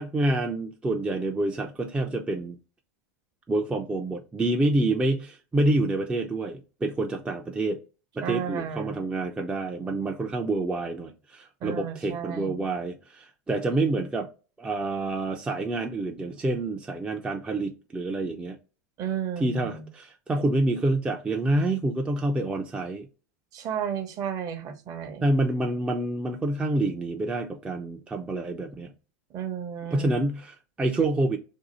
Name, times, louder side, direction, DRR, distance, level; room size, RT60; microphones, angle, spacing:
voice 1, 0.0-2.6 3.5-7.8 8.2-14.3 14.6-18.6 19.4-23.1 25.2-28.9 29.9-31.4, right 2 dB, 10° right, 0.4 m, -27 dB
voice 2, 8.2-9.0 11.6-12.6 19.0-19.9 23.5-25.3 29.3-30.2, right 8 dB, 40° right, 0.7 m, -33 dB
2.7 x 2.3 x 4.0 m
hypercardioid pair, 105°, 9 cm